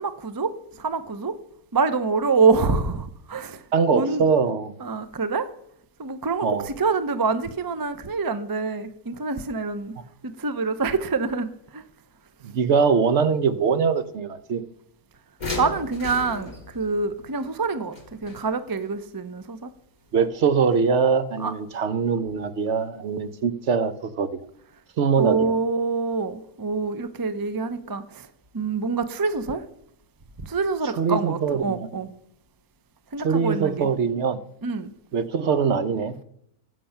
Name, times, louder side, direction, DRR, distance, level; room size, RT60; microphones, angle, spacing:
voice 1, 0.0-1.4 1.7-3.6 3.9-4.2 4.8-5.5 6.0-10.0 10.2-11.8 15.6-19.7 21.4-21.5 25.2-28.3 28.5-29.6 30.4-32.1 33.1-33.9 34.6-34.9, right 4 dB, 35° right, 12 dB, 0.3 m, -26 dB
voice 2, 3.7-4.7 6.4-6.7 12.4-14.6 20.1-24.4 25.0-25.5 31.0-31.9 33.2-34.4 35.1-36.1, right 5 dB, 55° right, 13 dB, 1.0 m, -22 dB
sound 1, 15.4-18.8 20.7-20.8 21.2-21.3, left 3 dB, 30° left, 2.6 m, -35 dB
15.5 x 7.7 x 5.8 m, 0.75 s
omnidirectional pair, 1.6 m